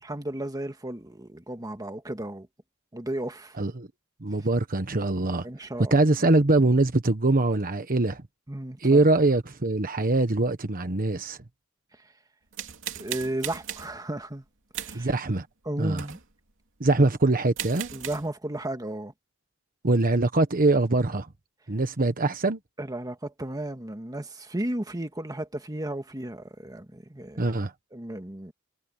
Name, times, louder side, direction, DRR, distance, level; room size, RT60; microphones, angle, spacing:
voice 1, 0.0-2.5 2.9-3.6 5.4-6.0 8.5-9.0 12.9-14.4 14.8-15.1 15.6-16.2 17.9-19.1 22.8-27.5 27.9-28.5, right 1 dB, 15° right, 1.7 m, -34 dB
voice 2, 3.6-3.9 4.2-5.5 5.8-8.2 8.8-11.4 14.9-15.5 15.8-16.0 16.8-17.9 19.8-21.3 21.7-22.6 27.4-27.7, right 2 dB, 40° right, 1.3 m, -23 dB
sound 1, 12.5-14.0 14.7-15.1 15.9-16.3 17.2-17.3 17.6-18.3, right 10 dB, 65° right, 2.9 m, -37 dB
head